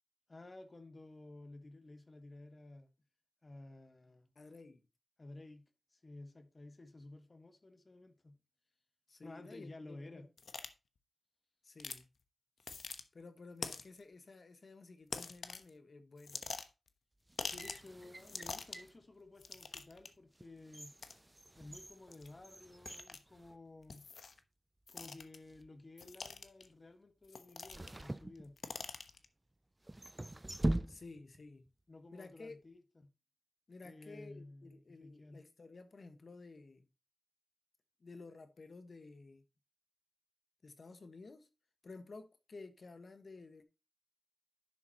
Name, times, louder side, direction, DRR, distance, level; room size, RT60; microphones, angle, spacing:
voice 1, 0.3-2.9 3.4-4.3 5.2-5.6 5.9-8.4 9.2-10.3 17.4-21.0 21.6-24.1 24.9-28.6 31.9-33.1 33.8-35.4, left 2 dB, 35° left, 1.5 m, -54 dB
voice 2, 4.3-4.8 9.1-10.3 11.6-12.1 13.1-16.5 30.9-31.7 32.1-32.6 33.7-36.9 38.0-39.4 40.6-41.5 41.8-43.6, left 3 dB, 60° left, 1.4 m, -53 dB
sound 1, 10.4-10.7 11.8-12.0 12.6-13.0 13.6-14.0 15.1-15.7 16.2-16.9 17.4-17.9 18.2-18.9 19.4-20.1 21.0-21.1 22.1-22.3 22.9-23.2 23.9-24.4 24.9-25.4 26.0-26.7 27.3-28.0 28.3-29.2, left 4 dB, 85° left, 1.0 m, -44 dB
sound 2, 17.3-19.0 19.6-19.8 20.3-24.1 24.4-24.5 25.3-25.7 27.7-29.0 29.8-31.4 31.7-31.8, right 1 dB, 20° right, 0.4 m, -42 dB
11.0 x 7.2 x 2.9 m
wide cardioid pair, 105°, 0 cm